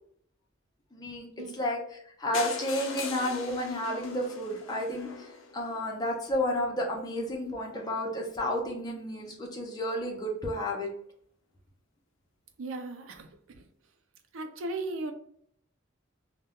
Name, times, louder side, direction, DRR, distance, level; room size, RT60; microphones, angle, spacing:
voice 1, 0.9-1.3 1.5-10.9, left 1 dB, 20° left, 0.5 m, -32 dB
sound 1, 2.3-6.2 6.9-7.0 7.2-7.3 7.6-7.7 7.9-8.0, left 4 dB, 80° left, 0.5 m, -40 dB
voice 2, 12.6-13.6 14.3-15.1, right 2 dB, 75° right, 0.4 m, -37 dB
2.2 x 2.1 x 3.5 m
head